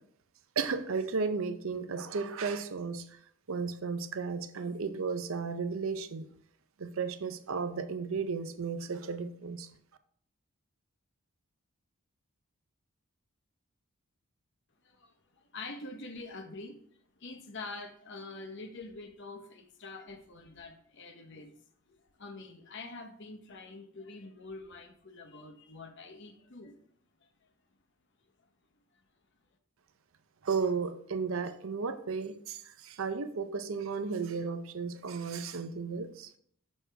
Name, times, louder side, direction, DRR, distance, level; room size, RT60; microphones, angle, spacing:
voice 1, 0.6-3.0 3.5-6.3 6.8-9.7 30.4-36.3, right 5 dB, 65° right, 10 dB, 0.6 m, -34 dB
voice 2, 14.8-21.5 21.9-26.8, left 3 dB, 55° left, 6 dB, 0.8 m, -46 dB
6.5 x 6.2 x 3.3 m, 0.63 s
head